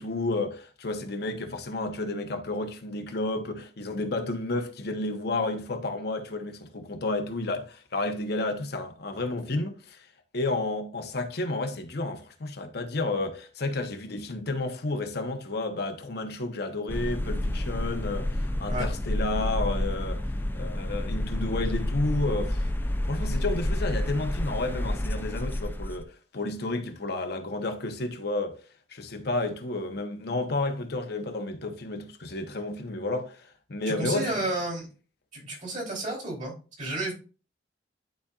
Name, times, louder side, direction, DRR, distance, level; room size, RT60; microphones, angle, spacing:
voice 1, 0.0-10.0 10.3-20.2 20.5-22.7 23.1-28.6 28.9-34.4, left 2 dB, 60° left, 0.9 m, -31 dB
sound 1, 16.9-26.0, left 1 dB, 10° left, 0.4 m, -29 dB
voice 2, 33.9-34.9 35.3-37.1, right 2 dB, 45° right, 3.3 m, -32 dB
11.5 x 4.2 x 2.4 m
head